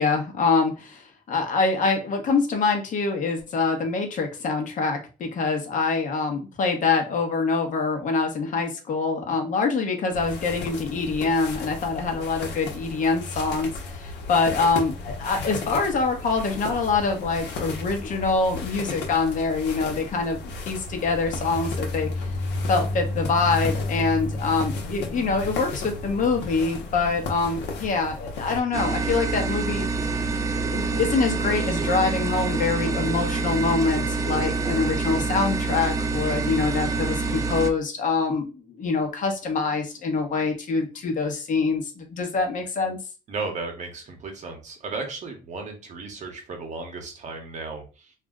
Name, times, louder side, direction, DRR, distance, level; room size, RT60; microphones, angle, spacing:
voice 1, 0.0-22.3 22.7-29.9 30.7-43.0, left 4 dB, 50° left, 3 dB, 0.8 m, -25 dB
sound 1, 10.1-28.6, left 3 dB, 80° left, 0.8 m, -33 dB
sound 2, 28.7-37.7, right 3 dB, 20° right, 0.4 m, -26 dB
voice 2, 43.3-48.1, right 3 dB, 45° right, 4 dB, 0.8 m, -35 dB
2.4 x 2.0 x 3.6 m, 0.33 s
cardioid pair, 110°, 17 cm